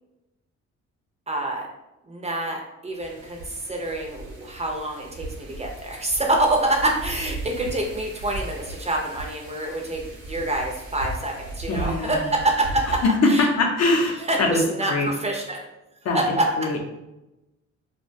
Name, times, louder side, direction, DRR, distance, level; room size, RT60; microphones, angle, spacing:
voice 1, 1.3-1.7 2.1-13.5 14.2-15.6 16.1-16.5, right 1 dB, 20° right, 1 dB, 0.4 m, -26 dB
Wind, 3.0-13.0, right 2 dB, 75° right, 0.7 m, -37 dB
voice 2, 11.7-12.2 13.0-15.1 16.0-16.2 16.6-16.8, left 2 dB, 60° left, 1 dB, 0.6 m, -22 dB
2.3 x 2.2 x 2.5 m, 0.94 s
cardioid pair, 90°, 30 cm